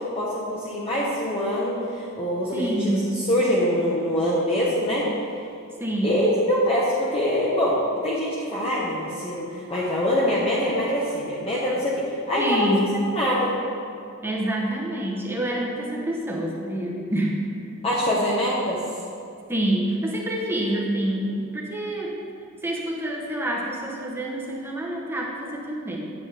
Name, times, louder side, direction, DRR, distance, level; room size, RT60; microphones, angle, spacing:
voice 1, 0.0-5.1 6.0-12.7 13.0-13.5 17.8-18.8, equal, 25° left, -6 dB, 1.0 m, -24 dB
voice 2, 2.5-3.1 5.8-6.2 12.4-13.0 14.2-17.4 19.5-22.2 22.6-26.0, right 1 dB, 10° right, -2 dB, 1.0 m, -27 dB
9.6 x 7.2 x 3.4 m, 2.5 s
head